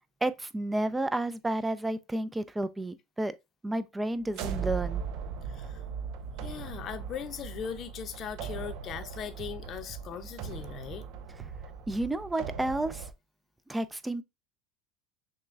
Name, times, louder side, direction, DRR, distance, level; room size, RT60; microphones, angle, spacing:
voice 1, 0.2-3.4 3.6-5.0 11.9-13.1 13.7-14.2, right 1 dB, 10° right, 0.4 m, -31 dB
sound 1, 4.2-13.1, right 7 dB, 65° right, 0.6 m, -39 dB
voice 2, 5.5-5.8 6.4-11.0, left 8 dB, 45° left, 0.7 m, -39 dB
6.3 x 2.3 x 2.5 m
hypercardioid pair, 90°, 0 cm